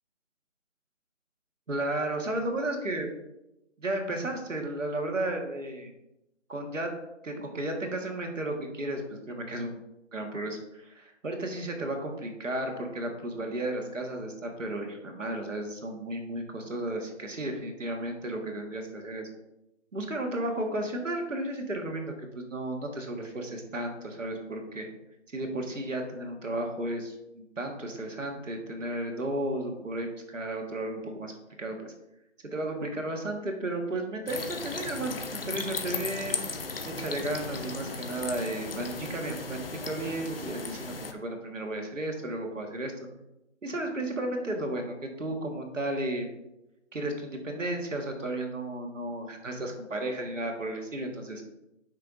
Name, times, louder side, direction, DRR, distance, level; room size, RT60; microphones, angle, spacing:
voice 1, 1.7-3.1 3.8-5.9 6.5-6.9 7.2-9.8 10.1-19.3 19.9-24.9 25.3-31.9 32.4-36.4 36.8-42.9 43.6-46.3 46.9-51.4, right 1 dB, 85° right, 3 dB, 1.6 m, -33 dB
sound 1, 34.3-41.1, left 3 dB, 50° left, 0.7 m, -36 dB
7.8 x 5.7 x 2.6 m, 0.91 s
figure-of-eight pair, 170°, 37 cm